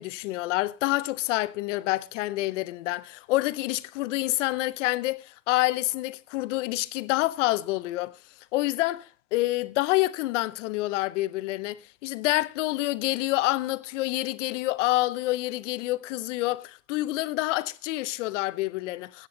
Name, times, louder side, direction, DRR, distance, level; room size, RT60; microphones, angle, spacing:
voice 1, 0.0-8.2 8.5-19.3, left 18 dB, 65° left, 0.9 m, -27 dB
16.0 x 9.1 x 3.8 m
supercardioid pair, 150°, 39 cm